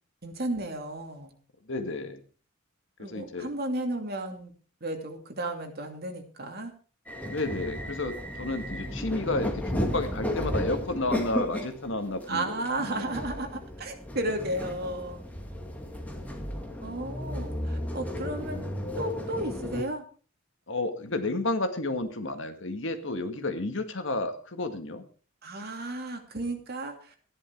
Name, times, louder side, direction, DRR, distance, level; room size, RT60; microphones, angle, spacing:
voice 1, 0.2-1.3 3.0-4.5 4.8-6.7 12.3-15.2 16.8-18.6 19.0-20.0 25.4-27.1, right 1 dB, 50° right, 4 dB, 2.6 m, -33 dB
voice 2, 1.7-2.2 3.1-3.5 7.3-13.1 20.7-25.0, left 2 dB, 65° left, 7 dB, 1.8 m, -31 dB
sound 1, 7.1-19.8, left 1 dB, 5° left, 2.2 m, -34 dB
14.0 x 11.0 x 4.7 m, 0.39 s
head